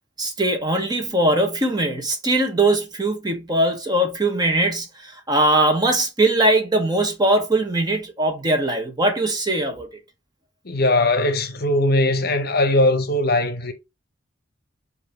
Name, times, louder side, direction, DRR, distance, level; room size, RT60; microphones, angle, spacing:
voice 1, 0.2-9.9, right 1 dB, 20° right, 1.0 m, -21 dB
voice 2, 10.6-13.7, left 2 dB, 50° left, 0.8 m, -20 dB
4.9 x 2.7 x 3.9 m
head